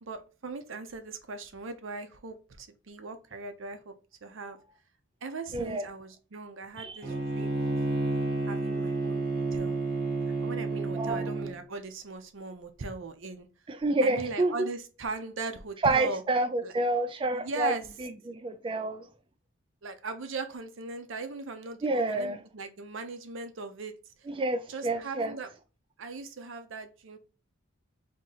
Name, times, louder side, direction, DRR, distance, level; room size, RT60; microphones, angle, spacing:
voice 1, 0.0-3.9 4.2-4.6 5.2-7.8 8.5-9.8 10.4-13.5 14.0-16.2 16.6-16.7 17.3-17.9 19.8-24.0 24.7-25.5 26.0-27.2, right 3 dB, 65° right, 0.7 m, -39 dB
voice 2, 5.5-5.9 6.8-7.0 10.9-11.3 13.7-14.7 15.8-17.7 18.0-19.1 21.8-22.4 24.3-25.3, right 2 dB, 25° right, 0.4 m, -28 dB
Bowed string instrument, 7.0-11.6, right 2 dB, 50° right, 1.4 m, -30 dB
3.6 x 2.8 x 3.9 m
head